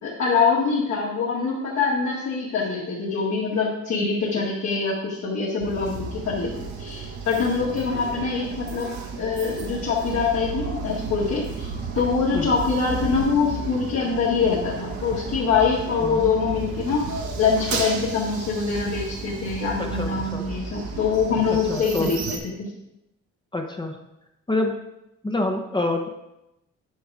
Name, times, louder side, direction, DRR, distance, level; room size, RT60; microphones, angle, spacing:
voice 1, 0.0-11.7 11.9-17.1 17.4-22.4, left 5 dB, 60° left, -6 dB, 2.2 m, -24 dB
sound 1, 5.6-22.4, right 4 dB, 70° right, 1.7 m, -33 dB
voice 2, 19.9-20.4 21.7-22.1 23.5-24.0 24.5-24.8 25.2-26.1, left 2 dB, 15° left, 3 dB, 1.0 m, -26 dB
9.6 x 5.2 x 5.0 m, 0.88 s
cardioid pair, 90°, 30 cm